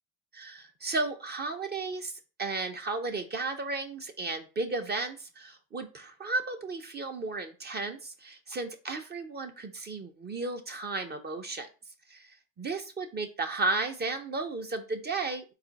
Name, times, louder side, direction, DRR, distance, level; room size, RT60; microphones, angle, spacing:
voice 1, 0.3-11.7 12.1-15.5, right 3 dB, 25° right, 5 dB, 0.5 m, -34 dB
3.8 x 2.4 x 3.8 m, 0.33 s
supercardioid pair, 75°, 38 cm